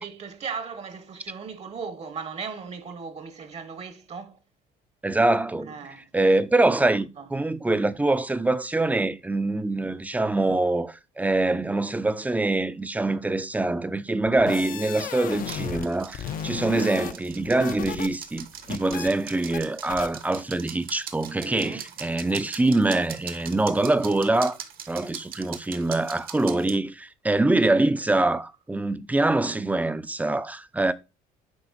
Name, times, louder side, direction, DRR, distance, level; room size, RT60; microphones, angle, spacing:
voice 1, 0.0-4.4 5.6-6.4 7.2-7.3 21.4-21.9, right 5 dB, 40° right, 1.0 m, -37 dB
voice 2, 5.0-5.7 6.1-24.6 24.9-30.9, right 2 dB, 10° right, 0.5 m, -24 dB
sound 1, 14.3-15.9 16.1-18.1 18.4-19.1 19.5-19.6 19.9-20.1, left 10 dB, 55° left, 0.7 m, -34 dB
sound 2, 15.4-26.8, right 8 dB, 60° right, 1.3 m, -42 dB
9.8 x 3.6 x 4.1 m
cardioid pair, 110°, 17 cm